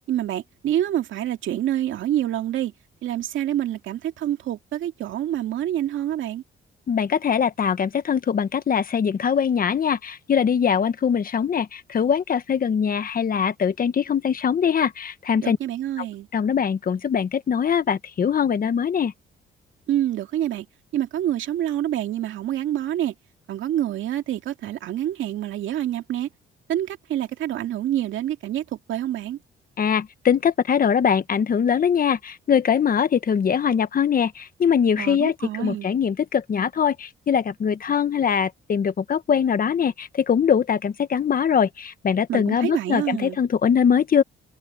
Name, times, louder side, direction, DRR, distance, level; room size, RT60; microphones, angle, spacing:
voice 1, 0.1-2.7 3.0-6.4 15.4-16.3 19.9-20.7 20.9-23.1 23.5-26.3 26.7-29.4 35.0-35.9 42.3-43.4, right 12 dB, 80° right, 2.3 m, -27 dB
voice 2, 6.9-15.6 16.0-16.1 16.3-19.1 29.8-44.2, left 7 dB, 45° left, 1.4 m, -22 dB
cardioid pair, 90°, 20 cm